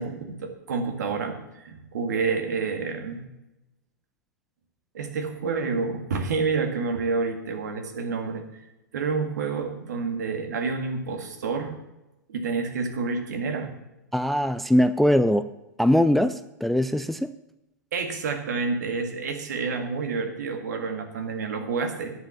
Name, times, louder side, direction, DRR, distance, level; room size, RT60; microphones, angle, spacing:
voice 1, 0.0-3.2 4.9-8.4 8.9-11.8 12.3-13.7 17.9-22.1, right 4 dB, 65° right, 5 dB, 2.0 m, -29 dB
voice 2, 14.1-15.5 15.8-17.3, equal, ahead, 13 dB, 0.3 m, -21 dB
10.5 x 7.2 x 7.3 m, 0.96 s
figure-of-eight pair, 100°, 10 cm